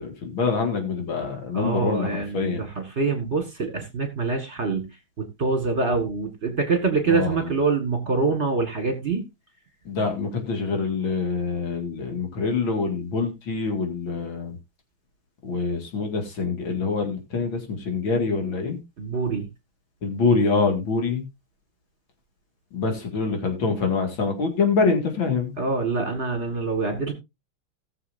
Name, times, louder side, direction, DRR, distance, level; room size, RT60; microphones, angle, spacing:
voice 1, 0.0-2.6 7.1-7.3 9.9-14.5 15.4-18.8 20.0-21.2 22.7-25.5, left 4 dB, 65° left, 3 dB, 2.8 m, -25 dB
voice 2, 1.5-4.9 5.2-9.3 19.0-19.5 25.6-27.1, right 4 dB, 35° right, 5 dB, 1.9 m, -25 dB
18.0 x 6.9 x 2.6 m, 0.23 s
omnidirectional pair, 2.3 m